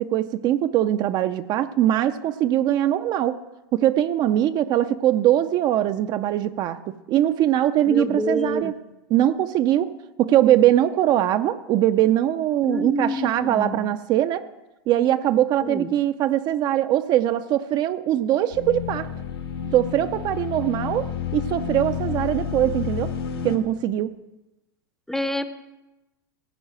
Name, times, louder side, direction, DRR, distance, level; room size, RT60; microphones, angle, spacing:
voice 1, 0.0-3.4 3.7-8.7 9.1-9.9 10.2-14.4 14.9-19.1 19.7-23.1 23.4-24.1, right 12 dB, 35° right, 11 dB, 0.5 m, -21 dB
voice 2, 7.9-8.7 12.6-13.9 15.6-15.9 25.1-25.4, equal, 5° left, 11 dB, 0.7 m, -27 dB
sound 1, 18.5-23.6, left 8 dB, 85° left, 2.3 m, -30 dB
15.5 x 5.4 x 8.9 m, 1.0 s
hypercardioid pair, 130°, 12 cm